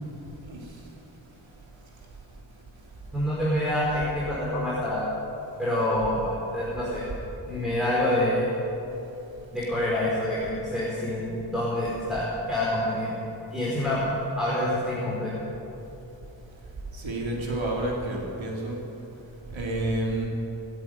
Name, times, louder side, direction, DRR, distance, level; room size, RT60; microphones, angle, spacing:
voice 1, 0.4-1.0 1.3-1.4 1.9-2.1 16.6-18.9 19.5-20.3, right 1 dB, 85° right, -2 dB, 3.6 m, -31 dB
voice 2, 3.1-5.1 5.6-7.1 7.5-8.5 9.5-13.1 13.5-14.0 14.4-15.3, left 1 dB, ahead, -8 dB, 5.1 m, -27 dB
19.5 x 14.5 x 9.7 m, 3.0 s
wide cardioid pair, 150°, 45 cm